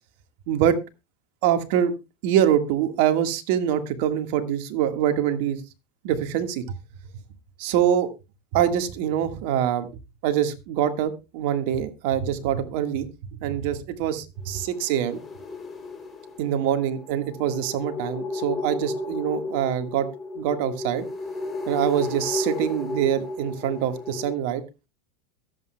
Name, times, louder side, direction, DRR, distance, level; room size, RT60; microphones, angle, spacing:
voice 1, 0.5-0.8 1.4-1.9 2.2-5.6 6.0-6.8 7.6-8.1 8.5-9.9 10.2-15.2 16.4-20.1 20.3-21.0 21.7-24.6, right 10 dB, 65° right, 8 dB, 1.6 m, -24 dB
sound 1, 14.4-24.3, left 3 dB, 20° left, 3.1 m, -34 dB
23.0 x 8.1 x 2.2 m, 0.26 s
hypercardioid pair, 95°, 0 cm